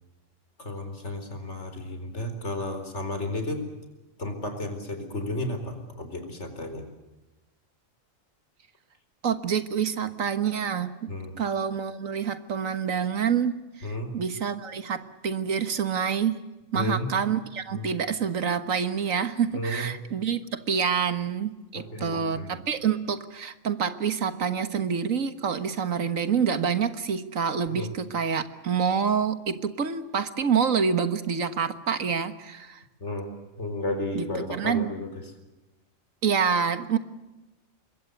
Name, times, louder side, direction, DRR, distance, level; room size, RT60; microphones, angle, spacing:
voice 1, 0.6-3.6 4.2-6.8 11.1-11.3 13.8-14.1 16.7-17.1 17.7-17.9 19.5-19.9 21.7-22.6 27.7-27.9 33.0-33.3 33.6-35.3, left 1 dB, 60° left, 7 dB, 4.4 m, -33 dB
voice 2, 9.2-11.1 11.4-16.4 16.7-32.8 34.2-34.3 34.5-34.9 36.2-37.0, right 7 dB, 80° right, 11 dB, 1.8 m, -27 dB
25.5 x 22.0 x 8.2 m, 1.1 s
omnidirectional pair, 1.4 m